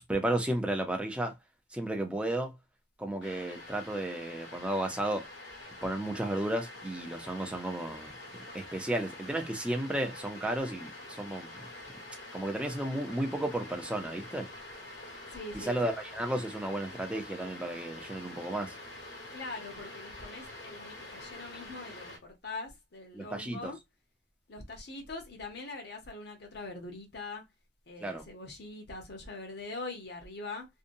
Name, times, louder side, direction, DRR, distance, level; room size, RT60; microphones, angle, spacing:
voice 1, 0.0-1.3 1.7-2.5 3.0-5.2 5.8-8.1 8.5-11.5 12.3-14.5 15.6-18.7 23.1-23.7 28.0-28.2, right 1 dB, 5° right, 0.5 m, -33 dB
sound 1, 3.2-22.2, left 1 dB, 80° left, 1.3 m, -46 dB
voice 2, 15.3-15.8 19.3-23.8 24.5-27.4 27.9-30.7, left 3 dB, 60° left, 0.9 m, -42 dB
2.7 x 2.1 x 2.6 m
head